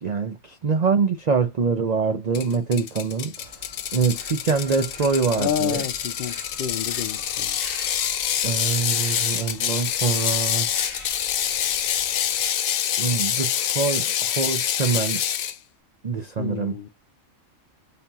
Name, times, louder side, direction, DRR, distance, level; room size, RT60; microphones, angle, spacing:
voice 1, 0.0-3.3 3.9-5.8 8.4-10.7 13.0-15.2 16.0-16.9, right 5 dB, 65° right, 0.4 m, -24 dB
Ratchet pawl, 2.3-15.6, left 10 dB, 85° left, 1.1 m, -26 dB
sound 1, 3.3-12.4, right 1 dB, 45° right, 1.8 m, -45 dB
voice 2, 5.4-7.5 16.4-16.9, left 9 dB, 65° left, 0.5 m, -29 dB
4.2 x 3.6 x 2.3 m
omnidirectional pair, 1.4 m